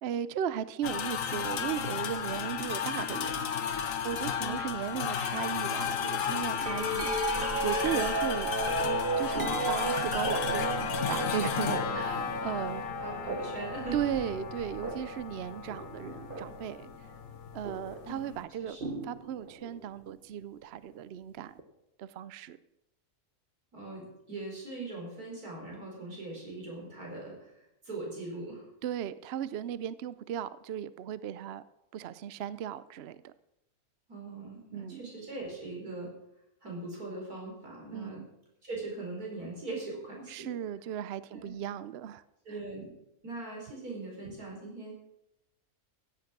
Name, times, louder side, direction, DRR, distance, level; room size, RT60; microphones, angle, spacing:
voice 1, 0.0-3.5 4.0-8.5 9.2-12.8 13.9-16.9 17.5-18.8 19.0-21.6 22.0-22.6 28.8-31.6 31.9-33.3 34.7-35.1 37.9-38.3 40.3-42.2, right 10 dB, 60° right, 16 dB, 0.7 m, -36 dB
sound 1, 0.8-18.4, left 8 dB, 65° left, 1.2 m, -34 dB
sound 2, 6.6-16.7 17.6-18.1 18.8-19.8 21.6-21.7, right 3 dB, 40° right, 1.3 m, -34 dB
voice 2, 13.0-14.0 18.1-18.2 18.6-18.8 23.7-28.7 34.1-36.1 36.6-38.2 38.6-40.6 41.3-41.5 42.4-42.9 43.2-44.9, right 2 dB, 85° right, -2 dB, 5.0 m, -41 dB
15.0 x 8.9 x 6.0 m, 0.84 s
omnidirectional pair, 1.5 m